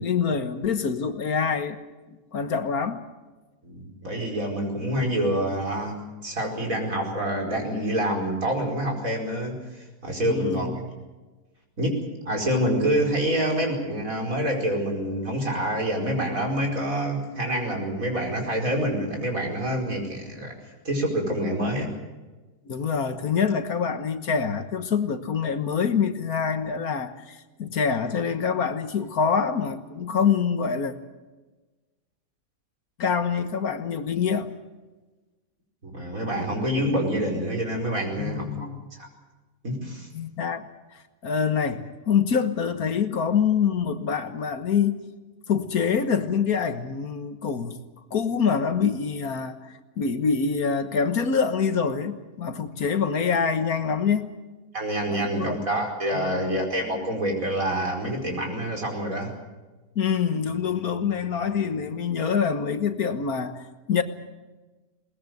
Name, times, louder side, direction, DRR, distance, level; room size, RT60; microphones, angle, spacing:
voice 1, 0.0-1.8 2.3-3.0 10.2-10.8 22.7-30.9 33.0-34.5 38.2-38.8 40.1-45.0 45.5-47.8 48.1-54.3 55.1-55.6 56.1-56.5 60.0-64.0, left 6 dB, 65° left, 9 dB, 1.7 m, -25 dB
voice 2, 3.6-6.0 6.2-10.8 11.8-12.0 12.3-20.5 20.9-21.9 35.8-39.1 39.6-40.1 52.7-52.8 54.7-59.3, right 1 dB, 55° right, 1 dB, 5.3 m, -27 dB
21.5 x 20.0 x 8.0 m, 1.2 s
omnidirectional pair, 1.7 m